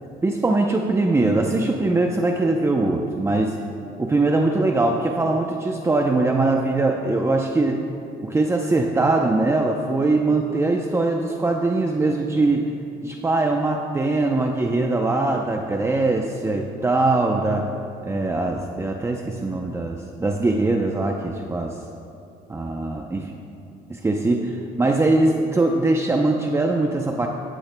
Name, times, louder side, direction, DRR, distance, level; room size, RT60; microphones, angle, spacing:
voice 1, 0.2-3.6 4.0-7.8 8.2-12.7 13.0-17.7 18.0-21.8 22.5-23.2 23.9-27.3, right 2 dB, 15° right, 2 dB, 0.6 m, -21 dB
15.5 x 14.0 x 2.2 m, 2.5 s
cardioid pair, 110°, 17 cm